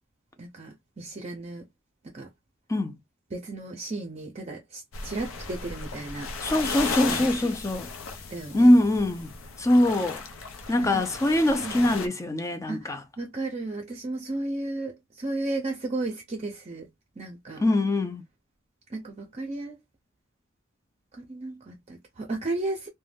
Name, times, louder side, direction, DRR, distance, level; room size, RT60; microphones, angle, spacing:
voice 1, 0.4-1.6 2.1-2.3 3.3-6.3 7.1-7.5 8.3-8.7 10.8-11.0 11.6-11.9 12.7-16.9 17.2-17.6 18.9-19.8 21.1-22.9, right 2 dB, 35° right, 0.6 m, -34 dB
sound 1, 4.9-12.1, left 4 dB, 75° left, 0.6 m, -36 dB
voice 2, 6.4-7.9 8.5-9.3 9.6-10.2 10.7-13.0 17.6-18.2, left 1 dB, 15° left, 0.4 m, -22 dB
2.5 x 2.2 x 3.4 m
head